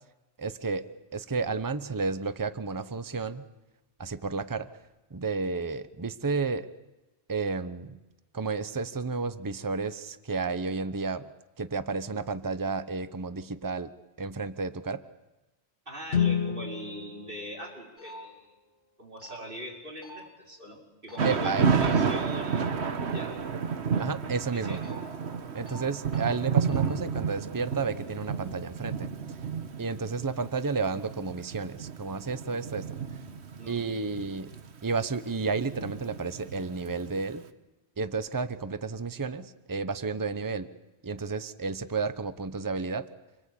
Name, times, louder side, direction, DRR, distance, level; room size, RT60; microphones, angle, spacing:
voice 1, 0.4-0.9 1.1-3.4 4.0-4.7 5.1-6.7 7.3-8.0 8.3-11.3 11.6-13.9 14.2-15.0 21.2-21.6 24.0-24.8 25.5-29.1 29.8-32.9 33.7-34.5 34.8-37.4 38.0-40.7 41.0-43.1, right 4 dB, 20° right, 12 dB, 0.9 m, -31 dB
voice 2, 15.9-18.5 19.0-22.8 23.1-23.4 24.5-24.8 33.6-33.9, equal, 55° right, -1 dB, 5.6 m, -42 dB
Guitar, 16.1-18.7, left 8 dB, 80° left, 1.6 m, -31 dB
sound 1, 18.0-18.2 19.2-19.4 20.0-20.2 21.1-21.3 21.8-22.0 24.6-24.9 25.7-25.8 26.1-26.2 26.6-26.8, equal, 10° left, 6.9 m, -48 dB
Thunder / Rain, 21.2-37.2, right 6 dB, 85° right, 1.5 m, -31 dB
27.0 x 22.5 x 8.6 m, 1.1 s
omnidirectional pair, 1.1 m